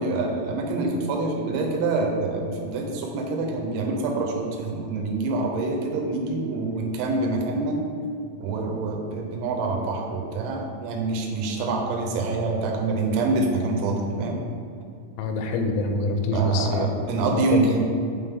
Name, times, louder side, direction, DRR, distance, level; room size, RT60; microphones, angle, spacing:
voice 1, 0.0-7.8 8.4-14.4 16.3-17.8, right 3 dB, 85° right, 1 dB, 3.5 m, -26 dB
voice 2, 15.2-16.9 17.1-17.8, left 2 dB, 85° left, 5 dB, 3.2 m, -26 dB
9.0 x 3.6 x 3.5 m, 2.4 s
omnidirectional pair, 6.0 m